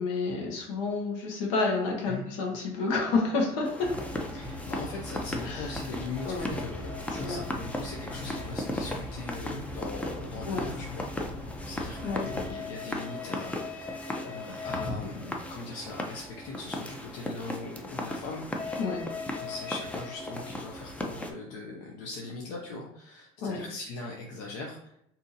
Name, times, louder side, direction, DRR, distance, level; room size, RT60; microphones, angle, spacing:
voice 1, 0.0-4.1 5.4-5.7 6.2-6.6 7.2-7.4 10.4-10.7 12.0-12.6 18.8-19.0 23.4-23.6, left 3 dB, 90° left, 0 dB, 1.0 m, -30 dB
sound 1, 3.6-21.3, left 1 dB, 10° left, 0.4 m, -37 dB
sound 2, 3.8-12.5, left 2 dB, 25° left, 0.9 m, -41 dB
voice 2, 4.3-11.1 11.7-18.5 19.4-25.0, left 3 dB, 70° left, -1 dB, 0.6 m, -40 dB
2.7 x 2.5 x 3.9 m, 0.75 s
supercardioid pair, 115°, 15 cm